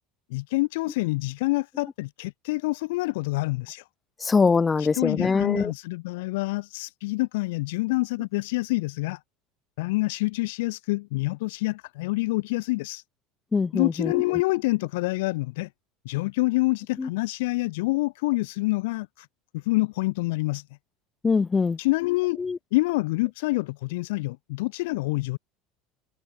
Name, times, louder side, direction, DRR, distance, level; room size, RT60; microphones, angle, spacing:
voice 1, 0.3-3.8 4.8-9.2 9.8-13.0 13.7-15.7 16.0-19.3 19.5-20.6 21.8-22.4 22.7-25.4, left 22 dB, 85° left, 4.5 m, -27 dB
voice 2, 4.2-5.7 13.5-14.1 17.0-17.1 21.2-21.8 22.4-22.6, left 4 dB, 15° left, 2.7 m, -23 dB
cardioid pair, 155°, 0 cm